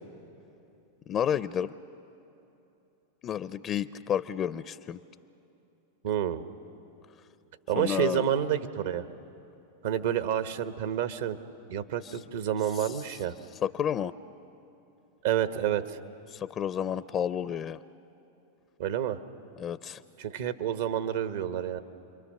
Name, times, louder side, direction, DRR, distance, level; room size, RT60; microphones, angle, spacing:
voice 1, 1.1-1.7 3.2-5.0 7.8-8.3 12.0-12.2 12.7-13.0 13.6-14.1 16.3-17.8 19.6-20.0, left 9 dB, 35° left, 15 dB, 0.5 m, -31 dB
voice 2, 6.0-6.4 7.7-9.0 9.8-11.4 11.7-13.3 15.2-16.0 18.8-19.2 20.2-21.8, right 10 dB, 70° right, 10 dB, 1.1 m, -29 dB
29.0 x 23.0 x 6.6 m, 2.9 s
hypercardioid pair, 100°, 0 cm